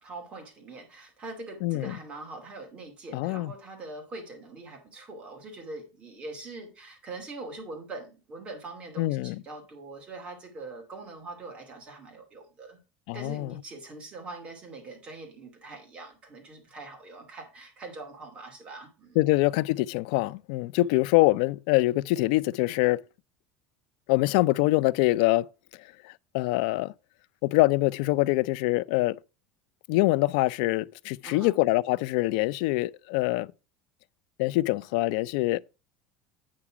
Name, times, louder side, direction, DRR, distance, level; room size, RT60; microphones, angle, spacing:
voice 1, 0.0-12.8 13.1-19.3 20.8-21.1 31.2-31.5, right 3 dB, 20° right, 2.6 m, -43 dB
voice 2, 1.6-1.9 3.1-3.5 9.0-9.4 13.1-13.5 19.2-23.0 24.1-25.5 26.0-26.9 27.4-29.2 29.9-33.5 34.4-35.6, left 19 dB, 70° left, 0.4 m, -24 dB
8.6 x 5.8 x 4.8 m
cardioid pair, 170°, 5 cm